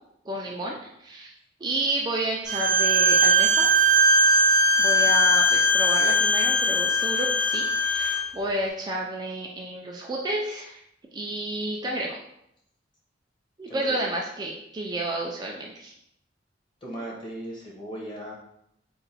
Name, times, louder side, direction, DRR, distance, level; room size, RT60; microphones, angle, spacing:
voice 1, 0.3-1.3 1.6-3.7 4.8-10.8 11.1-12.2 13.6-15.9, right 1 dB, 20° right, -1 dB, 0.4 m, -30 dB
Bowed string instrument, 2.5-8.2, equal, 65° right, 0.8 m, -20 dB
voice 2, 16.8-18.3, right 1 dB, 25° left, -3 dB, 1.1 m, -38 dB
3.8 x 2.2 x 4.1 m, 0.77 s
head